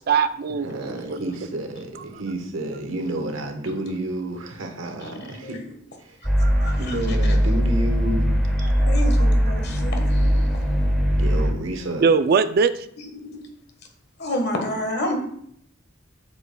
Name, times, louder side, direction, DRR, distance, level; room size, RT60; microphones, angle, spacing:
voice 1, 0.1-1.3 6.4-6.8 8.6-9.1 9.5-9.6 12.0-12.9, right 5 dB, 50° right, 12 dB, 0.4 m, -22 dB
voice 2, 0.6-5.6 6.0-6.2 6.8-8.4 11.2-12.1, right 1 dB, 85° right, 4 dB, 1.2 m, -30 dB
voice 3, 5.0-5.7 6.6-6.9 7.2-7.4 8.6-10.4 13.2-13.3 14.2-15.2, left 1 dB, 55° left, 4 dB, 1.4 m, -30 dB
sound 1, 6.2-11.5, equal, ahead, 1.2 m, -20 dB
8.1 x 7.0 x 2.3 m, 0.69 s
head